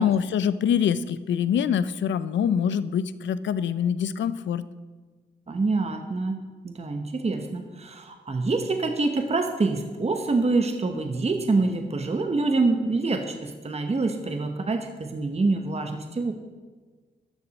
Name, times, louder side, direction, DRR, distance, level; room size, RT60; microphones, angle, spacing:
voice 1, 0.0-4.6, left 8 dB, 75° left, 15 dB, 0.5 m, -24 dB
voice 2, 5.5-16.3, right 3 dB, 35° right, 5 dB, 0.9 m, -26 dB
13.0 x 6.8 x 4.1 m, 1.4 s
cardioid pair, 55°, 19 cm